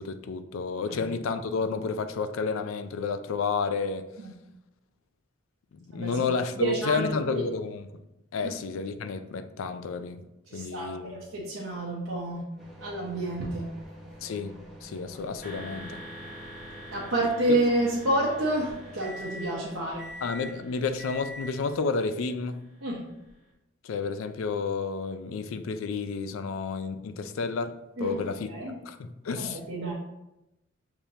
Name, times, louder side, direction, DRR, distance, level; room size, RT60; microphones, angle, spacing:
voice 1, 0.0-4.1 5.9-7.9 8.3-10.3 10.5-11.2 14.2-16.0 17.5-17.6 20.2-22.6 23.8-28.5 28.9-29.6, left 4 dB, 85° left, 0.4 m, -31 dB
voice 2, 5.9-6.2 6.6-7.4 8.4-8.5 10.5-12.5 12.8-13.8 16.9-20.1 22.8-23.1 28.0-28.2 28.5-28.8 29.4-29.9, right 1 dB, 80° right, 0.7 m, -29 dB
sound 1, 12.6-21.8, equal, ahead, 0.7 m, -45 dB
sound 2, 15.4-23.2, equal, 40° left, 1.7 m, -46 dB
6.7 x 2.9 x 2.7 m
head